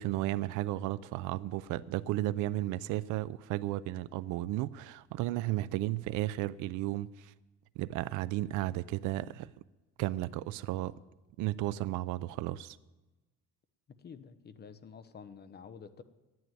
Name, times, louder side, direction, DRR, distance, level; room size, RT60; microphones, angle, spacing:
voice 1, 0.0-7.3 7.8-9.5 10.0-10.9 11.4-12.8, right 16 dB, 75° right, 0.5 m, -34 dB
voice 2, 14.0-16.0, left 6 dB, 30° left, 0.9 m, -49 dB
11.0 x 9.5 x 9.1 m
cardioid pair, 130°, 31 cm